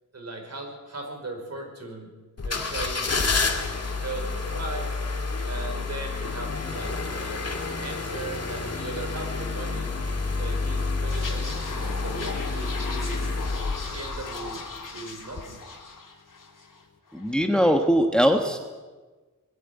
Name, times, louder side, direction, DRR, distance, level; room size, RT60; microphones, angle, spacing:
voice 1, 0.1-2.1 2.4-4.9 5.4-7.4 7.8-9.9 10.2-13.4 13.9-14.6 14.9-15.6, right 2 dB, 55° right, 2 dB, 5.2 m, -38 dB
sound 1, 2.4-14.9 15.3-15.4, left 3 dB, 50° left, 2.1 m, -29 dB
sound 2, 11.1-16.8 17.1-17.3, left 4 dB, 85° left, 3.7 m, -39 dB
voice 2, 17.1-18.6, equal, 5° left, 4 dB, 1.3 m, -21 dB
21.5 x 13.0 x 9.7 m, 1.3 s
wide cardioid pair, 125°, 31 cm